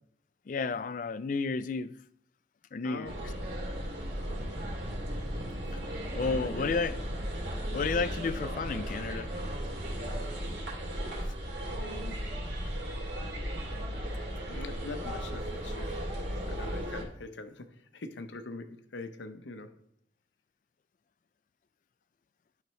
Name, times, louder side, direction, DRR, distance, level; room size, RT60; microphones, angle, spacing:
voice 1, 0.5-1.9 2.7-3.1 5.7-5.8 6.1-7.0 7.7-9.3, left 4 dB, 45° left, 0.3 m, -32 dB
voice 2, 2.8-3.4 6.1-6.7 11.6-12.3 13.8-13.9 14.5-16.0 16.5-19.8, left 3 dB, 80° left, 0.7 m, -43 dB
sound 1, 3.0-17.0, equal, 70° right, 2.4 m, -36 dB
10.5 x 5.7 x 3.1 m
head